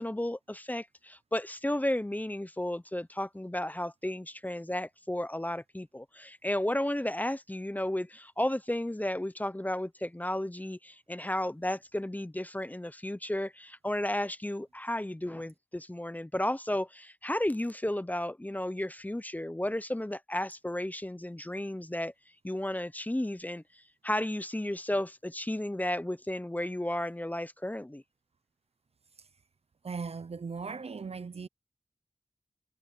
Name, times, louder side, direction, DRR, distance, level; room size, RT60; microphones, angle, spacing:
voice 1, 0.0-22.1 22.4-28.0, left 1 dB, 10° left, 0.7 m, -33 dB
voice 2, 29.8-31.5, right 5 dB, 50° right, 0.6 m, -38 dB
wide cardioid pair, 80°, 14 cm